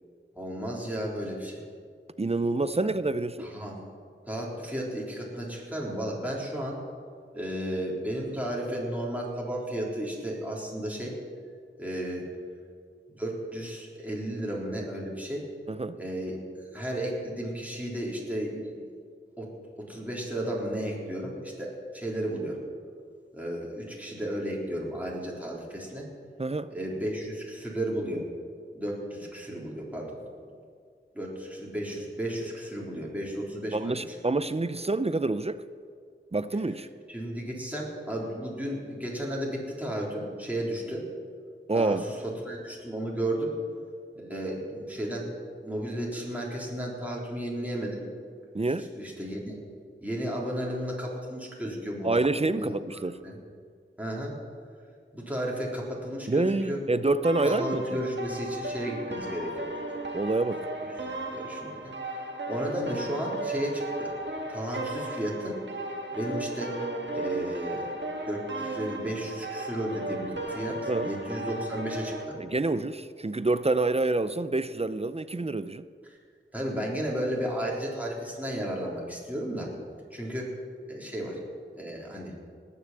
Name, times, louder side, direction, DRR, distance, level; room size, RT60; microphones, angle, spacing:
voice 1, 0.4-1.6 3.4-3.8 4.3-6.8 7.3-11.2 11.8-12.3 13.1-15.5 16.0-16.4 16.7-18.8 19.4-19.5 19.8-22.6 23.3-26.1 26.7-28.3 28.7-30.2 31.1-34.2 37.1-41.0 41.7-43.5 44.2-45.3 45.6-48.1 48.9-49.6 50.0-52.2 52.4-52.8 53.2-53.4 54.0-54.3 55.1-56.8 57.4-59.7 60.8-60.9 61.2-61.9 62.5-64.2 64.5-65.6 66.1-66.8 67.1-67.9 68.3-72.4 76.1-76.2 76.5-79.7 80.1-80.5 80.9-81.4 81.7-82.3, right 1 dB, 5° right, -4 dB, 3.8 m, -33 dB
voice 2, 2.2-3.5 15.7-16.0 26.4-26.7 33.7-35.6 36.3-36.9 41.7-42.0 48.5-48.9 52.0-53.2 56.3-57.8 60.1-60.7 70.9-71.1 72.4-75.8, right 2 dB, 30° right, 13 dB, 0.5 m, -27 dB
sound 1, 57.2-72.2, right 2 dB, 60° right, 1.7 m, -36 dB
19.0 x 6.8 x 7.5 m, 2.1 s
wide cardioid pair, 50°, 21 cm